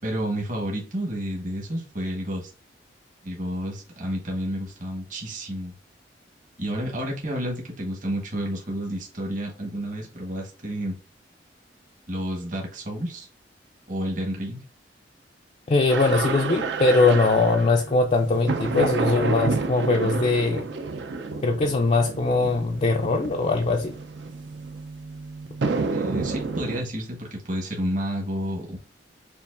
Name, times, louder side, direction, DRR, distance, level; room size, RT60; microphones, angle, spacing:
voice 1, 0.0-2.5 3.2-5.7 6.6-11.0 12.1-13.3 13.9-14.6 25.9-28.8, equal, 45° right, 1.2 m, -30 dB
voice 2, 15.7-20.7 21.4-23.9, left 3 dB, 35° left, 0.4 m, -21 dB
sound 1, 15.9-26.8, right 4 dB, 70° right, 0.5 m, -30 dB
6.9 x 2.5 x 2.4 m
head